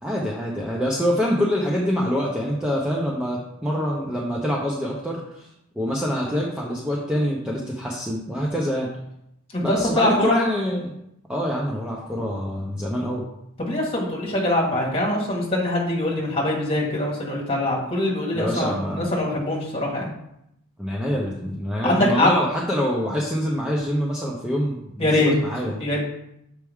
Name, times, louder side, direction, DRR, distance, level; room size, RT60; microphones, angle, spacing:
voice 1, 0.0-5.5 5.7-8.9 9.6-10.9 11.3-13.2 18.3-19.1 20.8-25.8, equal, 5° right, -4 dB, 0.7 m, -25 dB
voice 2, 9.5-10.4 13.6-20.1 21.8-22.3 25.0-25.3 25.8-26.0, left 1 dB, 25° left, -2 dB, 1.6 m, -23 dB
6.7 x 4.6 x 3.5 m, 0.80 s
head